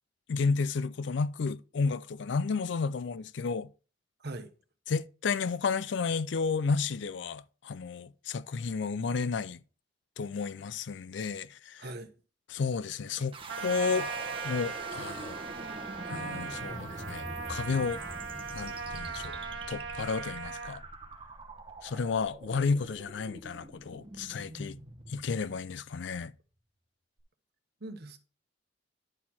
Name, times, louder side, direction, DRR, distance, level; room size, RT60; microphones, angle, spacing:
voice 1, 0.3-3.7 4.9-9.6 10.2-11.9 12.5-14.1 14.4-15.4 16.1-18.0 18.5-19.4 19.7-20.8 21.8-24.8 25.1-26.3, left 5 dB, 70° left, 0.4 m, -32 dB
voice 2, 4.2-4.5 11.8-12.1 13.2-13.3 27.8-28.2, right 2 dB, 60° right, 1.0 m, -41 dB
sound 1, 13.3-26.3, right 2 dB, 30° right, 1.0 m, -44 dB
Trumpet, 13.5-20.8, right 4 dB, 75° right, 1.3 m, -39 dB
10.5 x 4.3 x 4.3 m
head